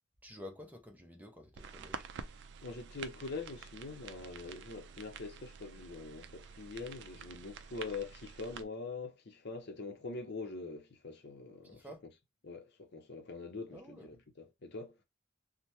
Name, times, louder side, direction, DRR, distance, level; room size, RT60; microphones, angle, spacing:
voice 1, 0.2-2.1 11.6-12.0 13.7-14.1, left 1 dB, 10° right, 0.7 m, -50 dB
sound 1, 1.5-8.6, right 6 dB, 60° right, 0.4 m, -49 dB
voice 2, 2.6-11.8 12.4-15.0, left 3 dB, 60° left, 0.7 m, -44 dB
3.2 x 2.1 x 2.7 m
head